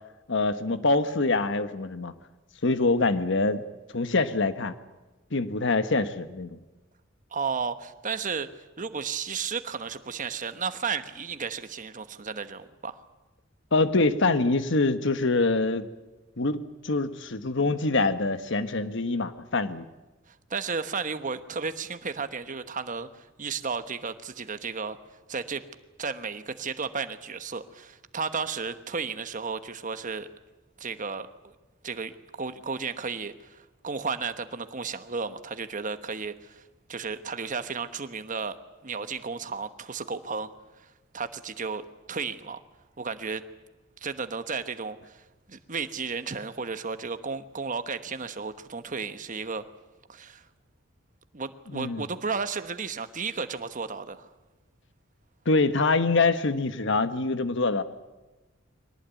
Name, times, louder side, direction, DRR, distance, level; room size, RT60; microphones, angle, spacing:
voice 1, 0.3-2.1 2.6-3.6 3.9-4.7 5.3-6.6 13.7-15.9 16.4-16.6 16.8-19.9 51.7-52.1 55.4-57.8, left 3 dB, 65° left, 11 dB, 1.3 m, -25 dB
voice 2, 7.3-8.5 8.8-13.0 20.3-25.0 25.3-25.6 26.0-30.3 30.8-31.5 31.8-36.6 36.9-38.6 38.8-40.5 41.1-42.6 43.0-43.4 44.0-45.2 45.5-49.6 50.1-50.4 51.3-54.3, right 5 dB, 40° right, 10 dB, 1.2 m, -33 dB
22.5 x 19.0 x 9.1 m, 1.1 s
head